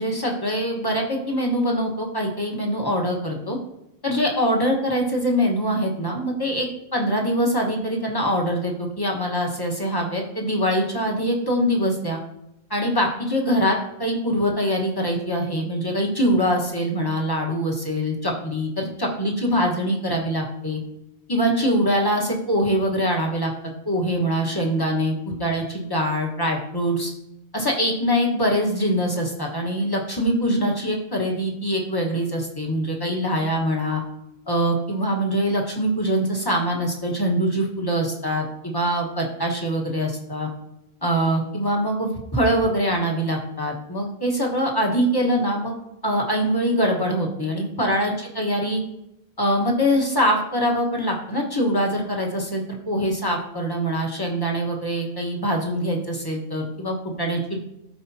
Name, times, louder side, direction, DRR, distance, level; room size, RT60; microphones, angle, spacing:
voice 1, 0.0-3.6 4.0-12.2 12.7-20.8 21.3-23.5 23.8-27.1 27.5-34.0 34.5-40.5 41.0-45.7 46.0-48.8 49.4-57.6, equal, 20° left, 0 dB, 1.4 m, -23 dB
13.0 x 4.9 x 2.8 m, 0.83 s
omnidirectional pair, 1.1 m